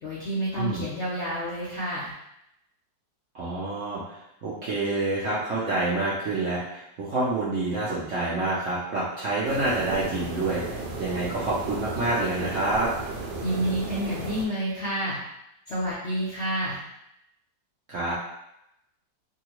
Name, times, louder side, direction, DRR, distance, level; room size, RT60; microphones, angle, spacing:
voice 1, 0.0-2.1 13.4-15.2 15.7-16.8, right 1 dB, 65° left, -7 dB, 0.7 m, -29 dB
voice 2, 3.3-12.9 17.9-18.1, right 2 dB, 60° right, -7 dB, 0.8 m, -28 dB
sound 1, 9.4-14.4, right 3 dB, 75° right, 1.2 m, -35 dB
2.7 x 2.7 x 2.9 m, 0.82 s
omnidirectional pair, 1.9 m